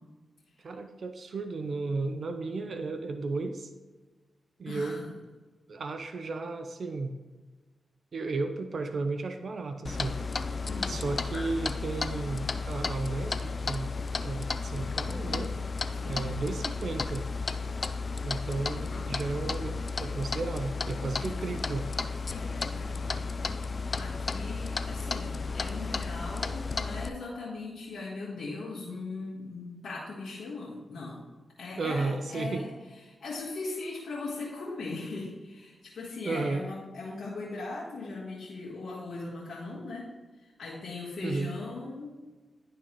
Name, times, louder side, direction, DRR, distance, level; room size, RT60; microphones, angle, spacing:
voice 1, 0.6-3.7 4.6-5.0 5.7-7.2 8.1-10.2 10.8-13.9 14.2-15.5 16.1-17.3 18.2-21.9 31.8-32.7 36.2-36.6 41.2-41.5, right 3 dB, 65° right, 8 dB, 0.5 m, -34 dB
voice 2, 4.6-5.1 10.6-11.0 15.9-16.2 21.2-21.8 22.3-23.3 23.7-31.2 31.6-42.1, left 3 dB, 70° left, -8 dB, 1.7 m, -39 dB
Clock, 9.9-27.1, left 4 dB, 50° left, 0.4 m, -33 dB
11.0 x 3.7 x 3.1 m, 1.3 s
cardioid pair, 45°, 0 cm